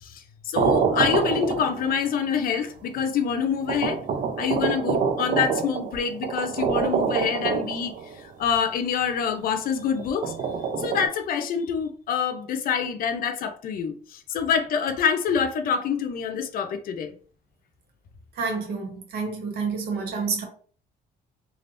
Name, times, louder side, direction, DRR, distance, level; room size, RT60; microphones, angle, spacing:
voice 1, 0.0-4.0 4.4-7.9 8.4-10.4 10.8-17.1, left 7 dB, 60° left, 0.6 m, -26 dB
sound 1, 0.5-2.1 3.0-3.1 3.7-8.2 10.0-11.1, right 6 dB, 50° right, 0.5 m, -26 dB
voice 2, 18.4-20.5, right 4 dB, 70° right, 1.1 m, -29 dB
3.4 x 2.5 x 2.5 m
cardioid pair, 110°, 17 cm